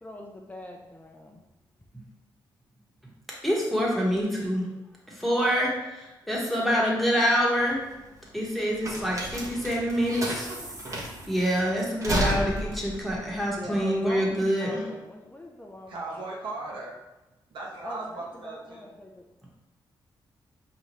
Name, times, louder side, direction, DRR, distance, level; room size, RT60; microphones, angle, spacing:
voice 1, 0.0-1.4 13.5-16.2 17.8-19.5, left 1 dB, 15° left, 1 dB, 0.4 m, -43 dB
voice 2, 3.4-4.6 5.2-7.8 8.3-10.5 11.3-14.8, equal, ahead, -4 dB, 1.2 m, -26 dB
sound 1, 7.6-14.4, equal, 40° right, 1.0 m, -33 dB
voice 3, 15.9-17.0 17.5-18.9, right 2 dB, 75° right, -2 dB, 1.0 m, -37 dB
5.0 x 2.8 x 3.0 m, 1.0 s
cardioid pair, 95°, 8 cm